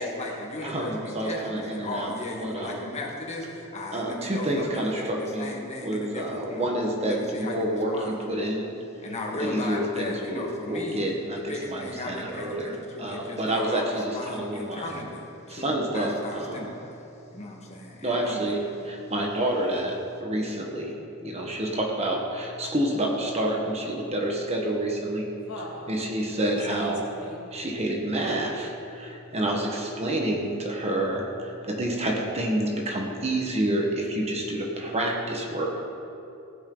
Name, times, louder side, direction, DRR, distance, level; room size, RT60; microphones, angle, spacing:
voice 1, 0.0-6.7 7.1-8.4 9.0-11.0 11.3-16.9 17.3-18.9, left 2 dB, 30° left, -1 dB, 1.7 m, -36 dB
voice 2, 0.6-2.1 2.4-2.9 3.9-5.5 5.8-8.7 9.4-14.9 15.5-16.7 18.0-18.6 18.8-20.9 21.2-25.3 25.9-27.0 27.5-35.8, right 1 dB, 30° right, 0 dB, 1.4 m, -28 dB
voice 3, 25.3-27.5, left 1 dB, 85° left, -1 dB, 1.9 m, -41 dB
16.0 x 9.9 x 3.9 m, 2.8 s
head